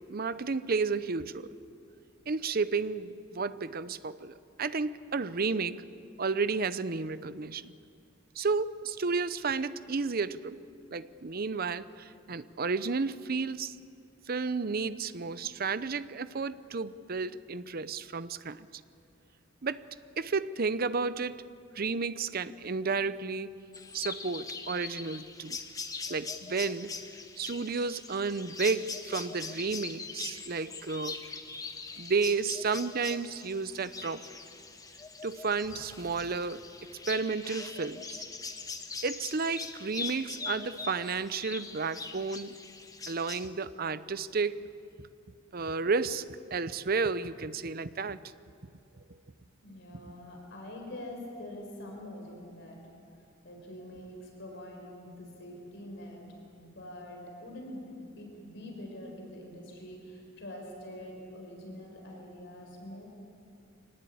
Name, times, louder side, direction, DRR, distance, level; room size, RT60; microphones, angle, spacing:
voice 1, 0.1-1.5 2.3-5.8 6.2-7.7 8.4-10.6 10.9-13.8 14.3-18.7 19.6-19.8 20.2-21.4 21.7-23.5 23.9-25.6 26.1-26.9 27.4-31.2 32.0-34.3 35.2-36.7 36.9-38.2 39.0-42.6 43.1-44.7 45.5-48.2, right 4 dB, 50° right, 14 dB, 0.7 m, -32 dB
sound 1, 23.7-43.5, left 4 dB, 20° left, 1.2 m, -42 dB
voice 2, 49.6-52.8 53.4-56.2 56.5-63.0, left 1 dB, 65° left, 1 dB, 4.8 m, -45 dB
24.5 x 19.0 x 8.6 m, 2.5 s
head